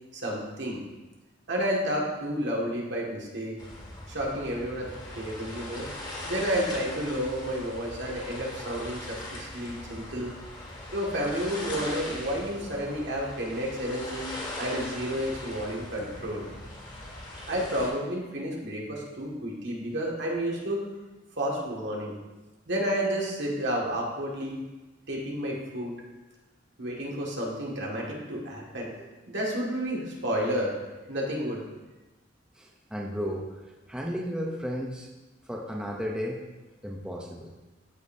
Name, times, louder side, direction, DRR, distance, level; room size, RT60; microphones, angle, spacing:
voice 1, 0.1-0.8 1.5-3.6 4.1-5.9 6.2-10.3 10.9-14.3 14.6-16.4 17.5-20.8 21.4-22.1 22.7-24.6 25.1-25.9 26.8-28.9 29.3-30.7 31.1-31.6, equal, 65° right, -3 dB, 1.9 m, -31 dB
sound 1, 3.6-17.9, left 1 dB, 25° left, 2.1 m, -40 dB
voice 2, 32.5-35.1 35.4-36.4 36.8-37.5, equal, 5° right, -1 dB, 0.6 m, -34 dB
14.0 x 5.3 x 2.7 m, 1.1 s
head